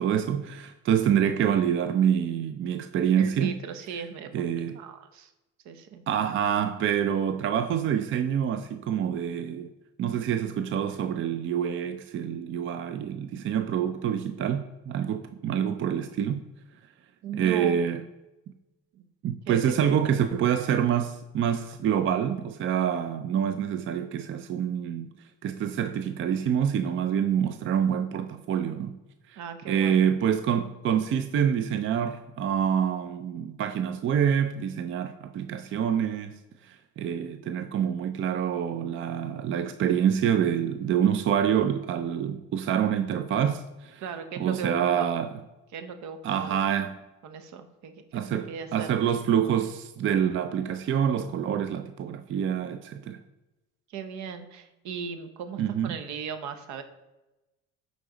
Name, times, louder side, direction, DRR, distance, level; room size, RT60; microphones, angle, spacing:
voice 1, 0.0-3.5 4.3-4.8 6.1-9.7 10.0-16.4 17.3-18.0 19.2-25.1 25.4-29.0 29.3-29.4 29.7-44.0 44.4-45.3 46.2-46.9 48.1-53.2 55.6-56.0, right 8 dB, 40° right, 0.4 m, -26 dB
voice 2, 3.2-5.3 5.6-6.0 17.2-17.8 18.9-19.1 19.5-19.8 20.0-20.1 23.2-23.3 29.4-30.1 44.0-45.1 45.7-46.7 47.2-48.9 53.9-56.8, right 6 dB, 65° right, 0.9 m, -38 dB
9.2 x 4.0 x 3.9 m
supercardioid pair, 80°, 31 cm